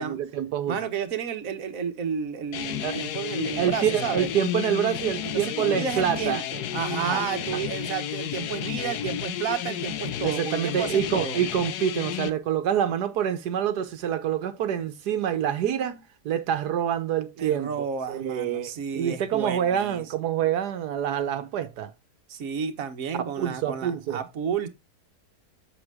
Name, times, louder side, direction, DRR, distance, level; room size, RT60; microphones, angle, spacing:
voice 1, 0.0-0.8 2.8-3.0 3.6-6.4 6.9-7.6 10.2-17.7 18.1-21.9 23.4-24.2, right 9 dB, 85° right, 1.5 m, -27 dB
voice 2, 0.7-4.3 5.2-11.4 17.4-20.0 22.3-24.7, right 7 dB, 60° right, 1.5 m, -31 dB
sound 1, 2.5-12.3, left 11 dB, 80° left, 1.3 m, -32 dB
7.9 x 7.2 x 3.5 m
omnidirectional pair, 1.7 m